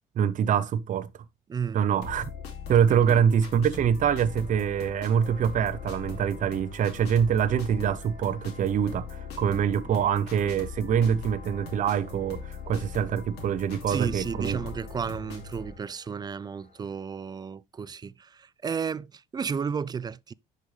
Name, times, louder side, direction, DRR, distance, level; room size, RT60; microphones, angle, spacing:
voice 1, 0.2-1.1 1.7-2.3 2.7-14.6, right 8 dB, 50° right, 0.7 m, -25 dB
sound 1, 2.0-15.7, left 4 dB, 80° left, 2.8 m, -40 dB
voice 2, 2.9-3.2 10.0-10.1 13.9-20.3, right 6 dB, 25° right, 0.3 m, -33 dB
sound 2, 4.4-17.1, left 3 dB, 55° left, 4.7 m, -55 dB
10.5 x 5.4 x 3.2 m
cardioid pair, 110°, 17 cm